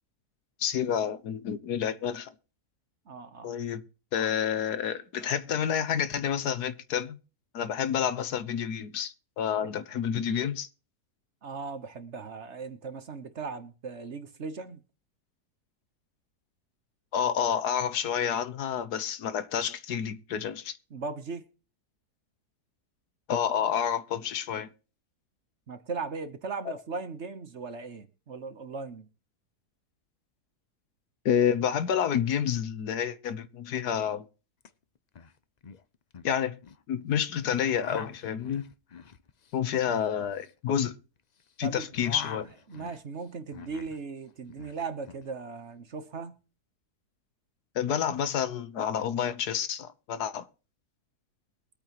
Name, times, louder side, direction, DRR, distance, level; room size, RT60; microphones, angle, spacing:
voice 1, 0.6-2.3 3.4-3.8 4.1-7.2 7.5-10.7 17.1-20.8 23.3-24.7 31.2-34.2 36.2-36.5 36.9-38.6 39.5-41.0 41.6-42.4 47.7-50.5, left 8 dB, 80° left, 1.5 m, -29 dB
voice 2, 3.1-3.5 9.6-9.7 11.4-14.8 20.9-21.5 25.7-29.1 41.6-41.9 42.7-46.3, right 4 dB, 50° right, 1.3 m, -38 dB
sound 1, 34.6-34.7 34.9-35.3 35.6-36.8 37.5-41.5 41.7-44.0 44.3-45.2, left 6 dB, 60° left, 0.4 m, -45 dB
22.5 x 8.7 x 3.0 m
omnidirectional pair, 1.7 m